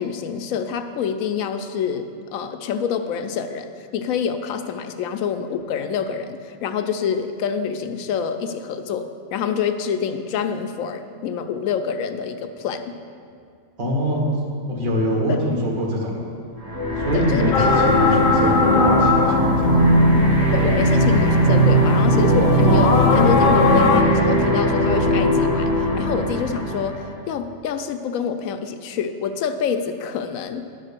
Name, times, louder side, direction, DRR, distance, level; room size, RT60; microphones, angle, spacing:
voice 1, 0.0-13.0 15.3-15.4 17.1-17.8 18.1-18.3 20.5-30.7, left 7 dB, 80° left, 8 dB, 1.0 m, -27 dB
voice 2, 13.8-14.3 14.7-16.3 17.0-20.0, equal, 85° right, -2 dB, 2.0 m, -24 dB
sound 1, 16.6-27.1, right 1 dB, 25° right, 1.9 m, -19 dB
sound 2, 17.5-24.0, left 5 dB, 50° left, 0.7 m, -21 dB
10.5 x 4.3 x 6.7 m, 2.3 s
omnidirectional pair, 1.4 m